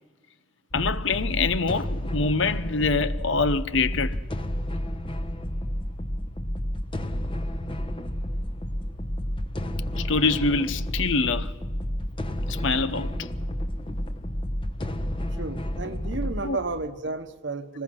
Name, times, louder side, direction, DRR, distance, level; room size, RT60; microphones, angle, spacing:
voice 1, 0.7-4.2 10.0-11.5 12.5-13.3 16.4-16.6, left 4 dB, 65° left, 0.9 m, -25 dB
sound 1, 0.7-16.9, equal, 25° left, 1.0 m, -31 dB
voice 2, 15.3-17.8, right 3 dB, 60° right, 1.3 m, -32 dB
24.5 x 20.5 x 6.3 m
head